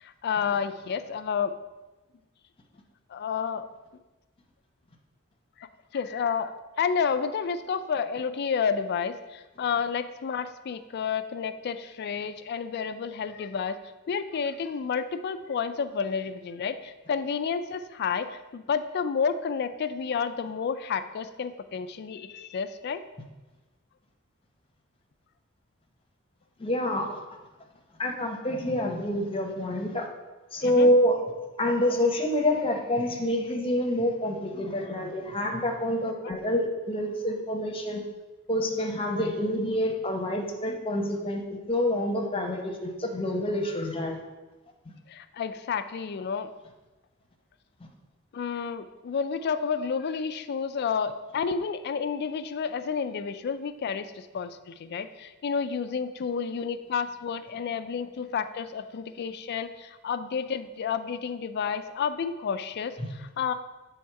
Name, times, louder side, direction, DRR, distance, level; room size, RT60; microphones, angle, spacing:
voice 1, 0.0-1.5 3.1-3.6 5.9-13.8 14.1-23.0 30.6-30.9 36.2-36.3 45.1-46.5 48.3-63.5, left 6 dB, 50° left, 10 dB, 0.4 m, -30 dB
voice 2, 26.6-27.2 28.0-30.1 30.5-31.2 31.6-38.0 38.5-44.2 44.9-45.0 63.0-63.1, left 1 dB, 25° left, 2 dB, 0.8 m, -27 dB
7.4 x 3.5 x 4.7 m, 1.1 s
head